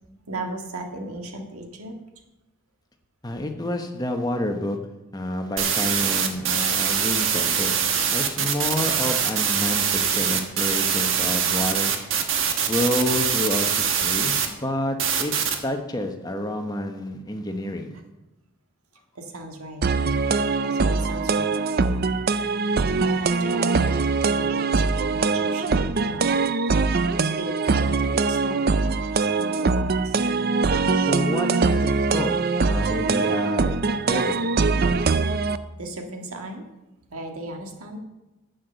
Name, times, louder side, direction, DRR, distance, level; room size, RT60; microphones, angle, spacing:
voice 1, 0.3-1.9 17.9-18.0 19.2-19.9 20.6-22.2 23.0-26.4 27.1-30.3 35.7-36.7 37.1-38.0, right 1 dB, 90° right, 3 dB, 1.8 m, -37 dB
voice 2, 3.2-4.8 5.1-7.8 8.1-11.9 12.7-15.3 15.6-18.0 31.0-34.5, left 1 dB, 20° left, 5 dB, 1.0 m, -29 dB
sound 1, 5.6-14.5 15.0-15.6, right 7 dB, 65° right, 1.3 m, -23 dB
sound 2, 19.8-35.6, right 4 dB, 45° right, 0.4 m, -22 dB
10.0 x 8.1 x 6.8 m, 1.0 s
head